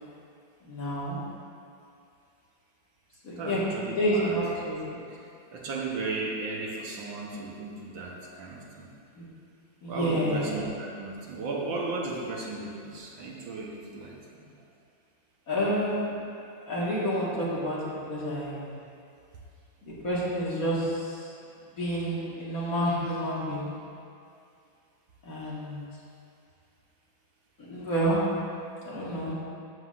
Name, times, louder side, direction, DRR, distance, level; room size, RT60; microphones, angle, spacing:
voice 1, 0.7-1.2 3.2-3.6 3.9-5.0 9.2-9.3 9.8-10.6 15.5-16.2 16.7-17.8 18.1-18.7 19.8-21.3 21.8-23.7 25.2-25.8 27.6-28.2 28.8-29.3, equal, 45° left, -7 dB, 2.1 m, -29 dB
voice 2, 3.4-4.4 5.5-8.9 9.9-14.5, right 3 dB, 80° right, -2 dB, 1.9 m, -35 dB
13.0 x 7.8 x 2.6 m, 2.5 s
omnidirectional pair, 2.1 m